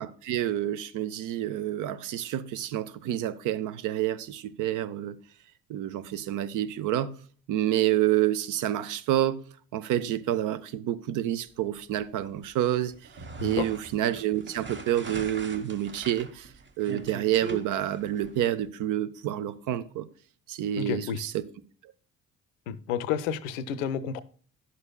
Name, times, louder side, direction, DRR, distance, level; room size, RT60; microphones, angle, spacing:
voice 1, 0.0-5.1 5.7-7.1 7.5-9.4 9.7-12.9 13.4-16.5 16.8-20.1 20.5-21.5, right 12 dB, 50° right, 0.7 m, -28 dB
sound 1, 12.9-18.4, right 3 dB, 30° right, 1.2 m, -42 dB
voice 2, 20.8-21.2 22.7-24.2, left 8 dB, 70° left, 0.6 m, -30 dB
11.0 x 6.7 x 2.2 m
figure-of-eight pair, 45°, 40 cm